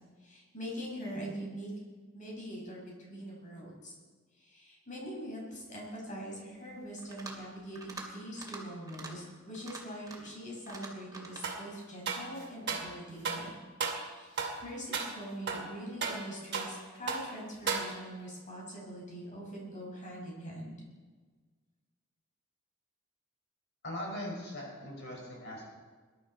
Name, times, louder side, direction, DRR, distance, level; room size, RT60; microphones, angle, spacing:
voice 1, 0.2-1.7 2.1-3.9 4.4-13.6 14.0-20.7, equal, 40° left, -3 dB, 5.9 m, -43 dB
sound 1, 7.0-7.4 7.8-8.1 8.4-8.6 8.9-9.1 9.5-10.3 10.7-11.5, right 3 dB, 20° right, 2.7 m, -45 dB
sound 2, 11.4-11.7 12.1-12.9 13.2-13.5 13.8-14.1 14.4-14.6 14.9-15.2 15.5-16.8 17.1-17.3 17.7-18.2, right 5 dB, 60° right, 2.3 m, -35 dB
voice 2, 23.8-25.6, left 1 dB, 60° left, -2 dB, 5.6 m, -40 dB
21.5 x 12.0 x 4.4 m, 1.4 s
head